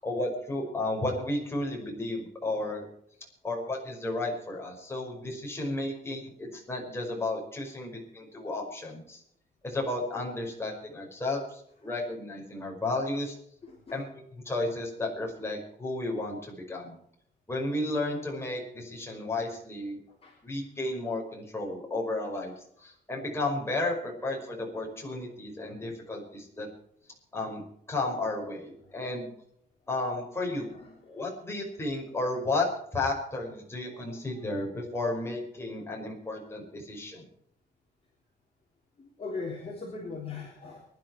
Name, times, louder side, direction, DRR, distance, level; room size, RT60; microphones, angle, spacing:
voice 1, 0.0-2.8 3.4-9.2 9.6-13.4 13.9-16.9 17.5-20.0 20.4-26.7 27.3-29.3 29.9-30.7 31.1-32.7 32.9-37.3, left 2 dB, 15° left, -2 dB, 5.5 m, -33 dB
voice 2, 13.6-14.0 20.1-20.4 30.5-31.2 33.9-34.0 34.3-34.4 35.8-35.9 39.0-40.9, left 4 dB, 30° left, -3 dB, 3.7 m, -41 dB
24.0 x 11.5 x 4.6 m, 0.68 s
wide cardioid pair, 170°, 19 cm